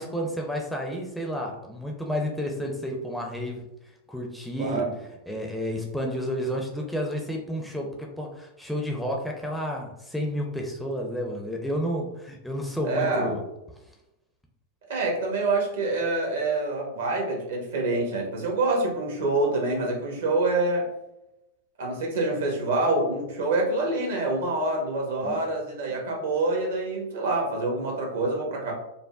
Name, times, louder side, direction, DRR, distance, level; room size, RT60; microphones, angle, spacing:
voice 1, 0.0-3.7 4.1-4.9 5.3-13.4 25.2-25.4, equal, ahead, 0 dB, 0.5 m, -31 dB
voice 2, 4.6-4.9 12.8-13.3 14.9-20.8 21.8-28.7, right 2 dB, 60° right, 0 dB, 1.0 m, -26 dB
5.2 x 2.2 x 2.4 m, 0.90 s
figure-of-eight pair, 90°, 0 cm